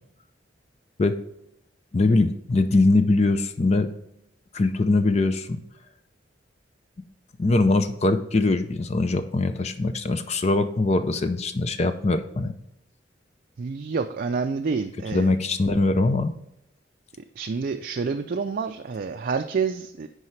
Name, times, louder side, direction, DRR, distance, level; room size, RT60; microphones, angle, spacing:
voice 1, 1.9-3.9 4.5-5.6 7.4-12.5 15.1-16.3, left 2 dB, 35° left, 9 dB, 0.5 m, -22 dB
voice 2, 13.6-15.3 17.4-20.1, right 5 dB, 50° right, 6 dB, 0.4 m, -28 dB
9.8 x 4.8 x 3.2 m, 0.82 s
head